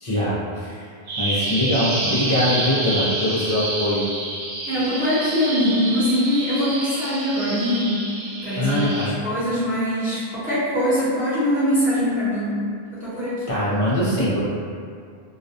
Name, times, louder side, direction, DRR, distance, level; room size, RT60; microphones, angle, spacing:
voice 1, 0.0-0.8 1.2-4.0 8.6-9.1 13.5-14.4, left 1 dB, 40° left, -8 dB, 0.6 m, -22 dB
Bird vocalization bird call bird song, 1.1-9.1, right 2 dB, 90° right, 0.8 m, -28 dB
voice 2, 4.7-7.9 8.4-12.6 12.9-13.6, equal, 10° right, -15 dB, 0.9 m, -22 dB
2.3 x 2.2 x 2.7 m, 2.3 s
omnidirectional pair, 1.0 m